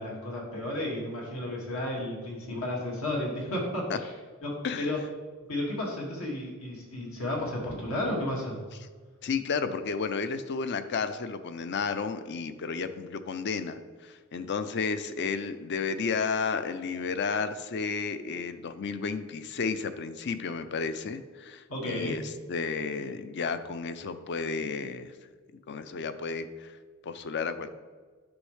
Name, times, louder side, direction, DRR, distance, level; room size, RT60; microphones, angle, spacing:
voice 1, 0.0-4.1 4.4-5.0 5.5-8.6 21.7-22.2, left 1 dB, 75° left, -2 dB, 2.1 m, -33 dB
voice 2, 9.2-25.1 25.7-26.8 27.0-27.7, left 5 dB, 55° left, 11 dB, 0.5 m, -32 dB
9.6 x 6.1 x 3.3 m, 1.5 s
head